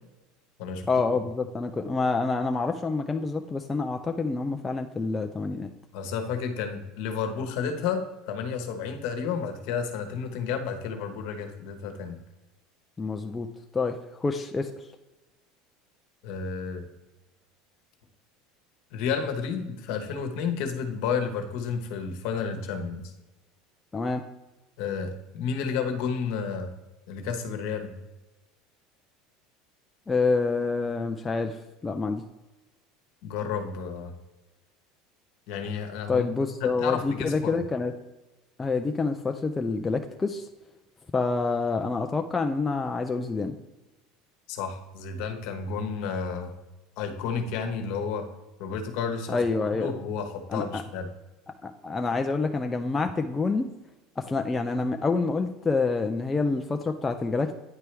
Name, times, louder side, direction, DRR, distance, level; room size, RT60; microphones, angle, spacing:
voice 1, 0.9-5.7 13.0-13.5 13.7-14.7 23.9-24.3 30.1-31.6 31.8-32.2 36.1-37.9 38.6-40.5 41.1-43.5 49.3-49.9 50.5-50.8 51.6-53.7 54.2-57.6, left 4 dB, 10° left, 4 dB, 0.3 m, -27 dB
voice 2, 5.9-12.2 16.2-16.9 18.9-23.1 24.8-26.7 27.1-27.9 33.2-34.1 35.5-36.3 36.6-37.6 44.5-46.5 47.0-48.3 48.6-49.4 49.7-51.1, left 6 dB, 55° left, 5 dB, 1.1 m, -31 dB
9.5 x 4.6 x 3.3 m, 1.1 s
cardioid pair, 170°, 0 cm